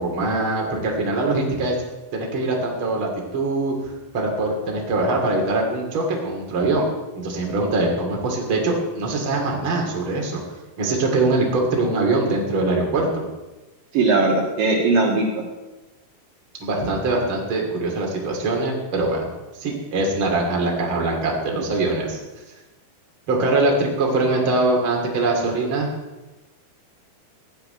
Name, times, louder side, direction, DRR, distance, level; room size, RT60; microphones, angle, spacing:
voice 1, 0.0-1.7 2.1-6.8 7.2-10.4 10.8-13.2 16.6-19.3 19.6-22.2 23.3-25.9, right 2 dB, 35° right, 0 dB, 3.1 m, -22 dB
voice 2, 13.9-15.3, right 3 dB, 65° right, -1 dB, 3.4 m, -19 dB
16.0 x 5.8 x 9.9 m, 1.1 s
omnidirectional pair, 4.5 m